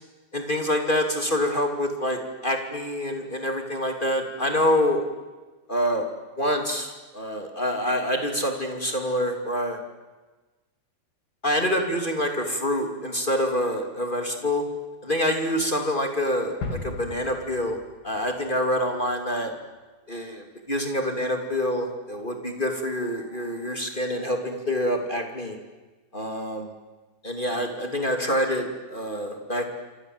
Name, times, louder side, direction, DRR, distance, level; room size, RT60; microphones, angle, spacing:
voice 1, 0.3-5.0 5.7-6.0 6.4-9.8 11.4-14.6 15.0-17.8 18.0-19.5 20.1-25.6 26.1-26.7 27.2-29.7, equal, 15° left, 4 dB, 1.6 m, -26 dB
sound 1, 16.6-18.5 18.9-19.0, left 3 dB, 60° left, 5.7 m, -36 dB
28.5 x 26.0 x 8.0 m, 1.2 s
omnidirectional pair, 5.5 m